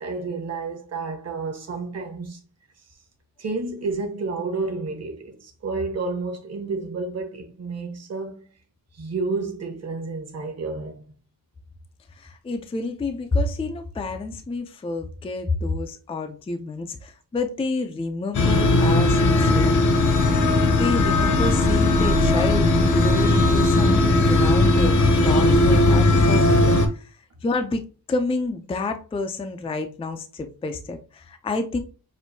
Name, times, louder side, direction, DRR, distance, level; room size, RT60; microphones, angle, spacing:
voice 1, 0.0-2.4 3.4-8.5 8.9-11.2, right 3 dB, 40° right, 1.0 m, -30 dB
voice 2, 12.2-20.1 20.7-25.0 25.2-27.8 28.1-31.8, left 3 dB, 15° left, 0.4 m, -29 dB
sound 1, 18.3-26.9, left 2 dB, 50° left, 0.8 m, -18 dB
6.2 x 2.6 x 2.6 m
wide cardioid pair, 160°, 38 cm